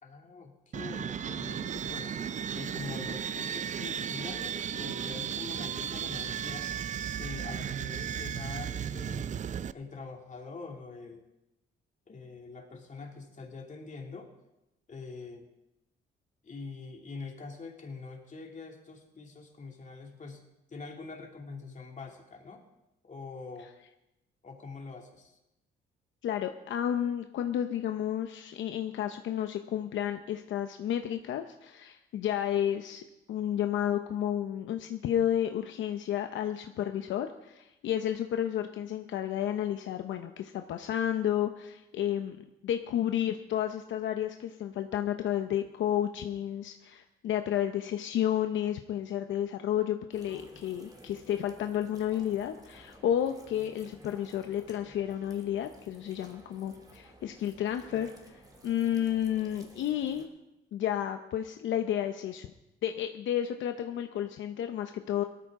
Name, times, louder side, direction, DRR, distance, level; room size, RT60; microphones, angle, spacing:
voice 1, 0.0-2.2 2.5-6.7 7.1-9.4 9.7-11.2 12.1-14.3 14.9-15.5 16.4-20.4 20.7-22.6 23.0-23.7 24.4-25.4, left 4 dB, 40° left, 1 dB, 2.7 m, -44 dB
sound 1, 0.7-9.7, right 8 dB, 40° right, 0.4 m, -35 dB
voice 2, 26.2-42.4 42.6-58.3 58.6-60.3 60.7-62.5 62.8-65.2, left 10 dB, 75° left, 7 dB, 0.8 m, -31 dB
sound 2, 50.1-60.2, right 1 dB, 20° right, 2.5 m, -54 dB
18.0 x 13.5 x 3.7 m, 0.92 s
cardioid pair, 90°, 20 cm